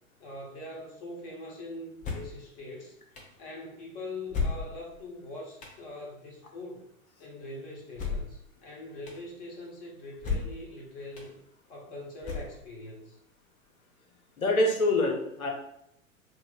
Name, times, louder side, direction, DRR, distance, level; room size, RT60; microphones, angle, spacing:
voice 1, 0.2-6.9 7.2-11.4 11.7-13.2, left 2 dB, 40° left, -2 dB, 1.2 m, -43 dB
sound 1, 2.0-2.4 3.2-3.3 4.3-5.0 5.6-5.8 7.9-8.4 9.1-9.2 10.2-10.7 11.2-11.3 12.2-12.8, left 4 dB, 20° left, 0.6 m, -33 dB
voice 2, 14.4-15.5, left 2 dB, 80° left, 2 dB, 0.9 m, -25 dB
3.0 x 2.0 x 4.0 m, 0.76 s
figure-of-eight pair, 100°, 42 cm